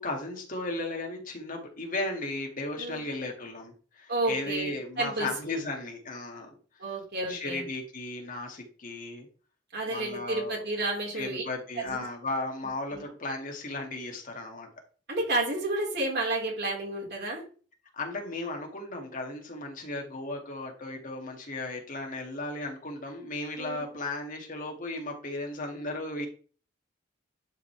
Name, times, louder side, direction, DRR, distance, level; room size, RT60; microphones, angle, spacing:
voice 1, 0.0-6.6 7.3-9.3 9.9-10.6 11.1-14.7 17.9-26.3, left 2 dB, 45° left, 2 dB, 2.2 m, -35 dB
voice 2, 4.1-5.3 6.8-7.6 9.7-11.4 11.8-12.1 12.9-13.0 15.1-17.4 23.6-23.8, right 2 dB, 60° right, -3 dB, 4.5 m, -31 dB
11.0 x 5.4 x 3.4 m, 0.39 s
head